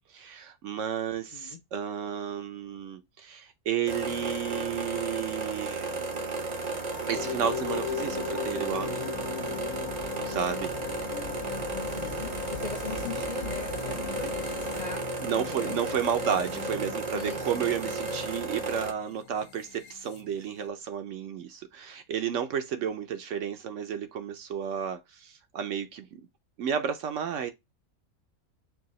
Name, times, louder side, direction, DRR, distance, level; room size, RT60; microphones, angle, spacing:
voice 1, 0.1-6.2 7.1-9.1 10.2-10.7 15.2-26.3 26.6-27.5, right 8 dB, 65° right, 0.9 m, -32 dB
sound 1, 3.9-18.9, right 3 dB, 40° right, 0.6 m, -34 dB
sound 2, 6.5-14.9, left 6 dB, 65° left, 0.9 m, -43 dB
sound 3, 7.1-20.7, left 12 dB, 90° left, 1.1 m, -40 dB
voice 2, 11.7-14.3 14.7-15.0 15.4-16.0 17.1-17.7, left 5 dB, 45° left, 0.6 m, -40 dB
4.7 x 2.3 x 4.1 m
omnidirectional pair, 1.5 m